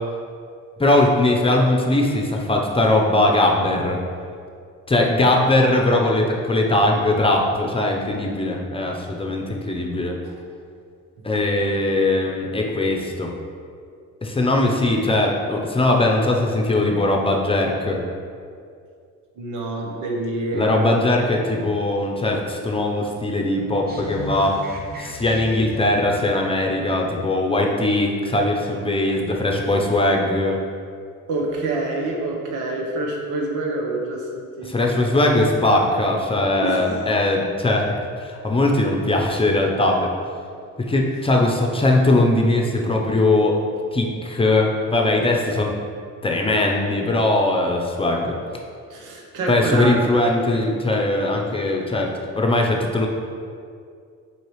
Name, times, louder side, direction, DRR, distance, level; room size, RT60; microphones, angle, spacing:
voice 1, 0.8-4.0 4.9-10.1 11.2-13.3 14.2-18.0 20.5-24.6 25.0-30.6 34.6-37.9 38.2-40.1 40.8-43.6 43.9-45.7 46.2-48.4 49.5-53.1, left 2 dB, 20° left, 0 dB, 0.8 m, -20 dB
voice 2, 19.4-21.0 31.3-35.1 36.3-37.0 48.9-49.9, right 2 dB, 90° right, -1 dB, 1.1 m, -27 dB
sound 1, 23.9-26.1, equal, 30° right, 0.8 m, -35 dB
6.4 x 4.7 x 3.2 m, 2.3 s
cardioid pair, 90°, 30 cm